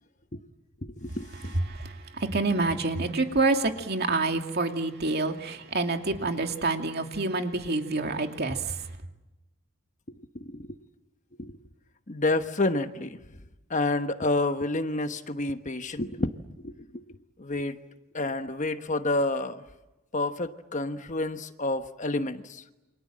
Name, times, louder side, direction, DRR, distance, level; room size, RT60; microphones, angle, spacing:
voice 1, 0.8-1.6 10.1-10.8 11.4-11.5 12.1-13.2 13.7-16.4 16.6-17.8 18.1-19.6 20.1-22.8, left 2 dB, 35° left, 9 dB, 1.2 m, -29 dB
voice 2, 1.5-8.9, right 3 dB, 50° right, 5 dB, 2.6 m, -27 dB
29.0 x 26.5 x 7.6 m, 1.0 s
head